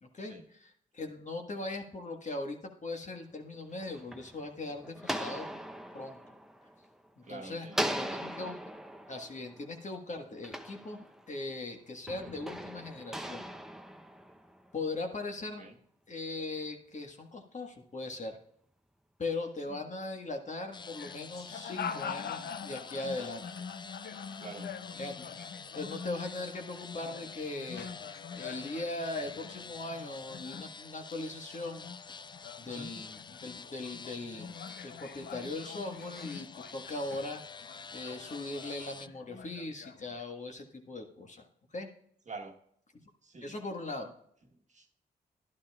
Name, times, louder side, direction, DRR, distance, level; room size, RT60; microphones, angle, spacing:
voice 1, 0.0-0.3 0.9-5.5 5.9-6.2 7.2-8.5 9.1-13.5 14.7-15.7 16.1-18.4 19.2-23.7 25.0-25.4 25.7-31.9 32.6-41.9 43.4-44.1, left 2 dB, 45° left, 3 dB, 1.6 m, -39 dB
sound 1, 3.5-7.2 7.7-11.5 12.1-14.7, equal, ahead, 0.8 m, -40 dB
voice 2, 7.2-8.3 15.4-15.8 18.1-18.2 19.7-19.8 24.4-24.7 32.6-32.9 42.3-42.6 43.2-43.6 44.0-44.1 44.5-44.9, right 3 dB, 45° right, 4 dB, 1.3 m, -48 dB
sound 2, 20.7-31.2 31.5-40.2, left 7 dB, 65° left, 0.6 m, -45 dB
sound 3, 20.7-39.1, left 5 dB, 25° left, 0.3 m, -48 dB
11.5 x 11.0 x 2.4 m, 0.67 s
supercardioid pair, 45°, 18 cm